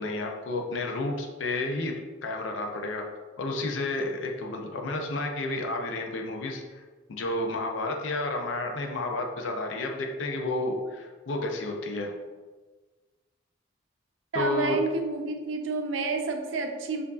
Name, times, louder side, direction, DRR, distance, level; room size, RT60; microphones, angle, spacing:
voice 1, 0.0-1.9 2.2-3.0 3.4-6.8 7.1-12.1 14.3-14.8, left 2 dB, 80° left, 2 dB, 0.5 m, -31 dB
voice 2, 14.3-17.0, right 3 dB, 90° right, 4 dB, 0.5 m, -29 dB
4.5 x 2.5 x 2.4 m, 1.3 s
head